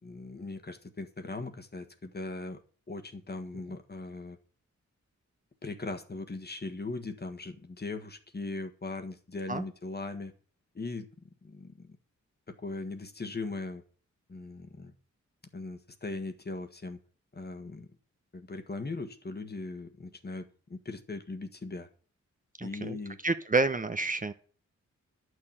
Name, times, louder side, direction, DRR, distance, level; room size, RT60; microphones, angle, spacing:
voice 1, 0.0-2.6 2.9-4.4 5.6-10.3 10.7-12.0 12.5-13.8 14.3-14.9 15.5-17.0 17.3-17.9 18.3-21.9 22.6-23.2, left 3 dB, 35° left, 7 dB, 1.5 m, -39 dB
voice 2, 22.6-23.0 23.2-24.3, right 3 dB, 25° right, 8 dB, 0.9 m, -29 dB
11.0 x 6.4 x 8.8 m, 0.43 s
wide cardioid pair, 85°, 30 cm